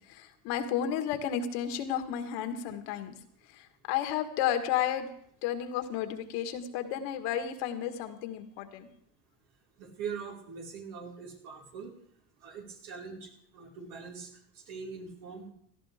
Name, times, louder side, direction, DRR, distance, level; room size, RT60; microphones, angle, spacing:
voice 1, 0.1-3.1 3.5-5.1 5.4-8.9, left 9 dB, 75° left, 7 dB, 1.7 m, -32 dB
voice 2, 9.8-11.9 12.4-15.5, right 6 dB, 75° right, -2 dB, 4.8 m, -42 dB
17.5 x 13.5 x 3.5 m, 0.67 s
supercardioid pair, 100°, 44 cm